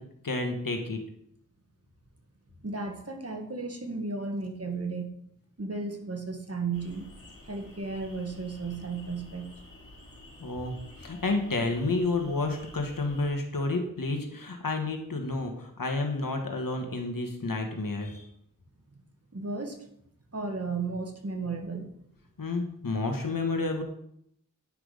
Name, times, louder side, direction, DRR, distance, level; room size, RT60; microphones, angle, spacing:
voice 1, 0.2-1.0 10.4-18.3 22.4-23.8, left 3 dB, 80° left, 3 dB, 1.5 m, -30 dB
voice 2, 2.6-5.1 5.6-7.1 7.5-9.5 19.3-19.9 20.3-21.9, right 4 dB, 45° right, 4 dB, 1.7 m, -34 dB
sound 1, 6.7-13.3, left 1 dB, 45° left, 4.0 m, -50 dB
9.9 x 6.1 x 5.0 m, 0.72 s
wide cardioid pair, 45°, 33 cm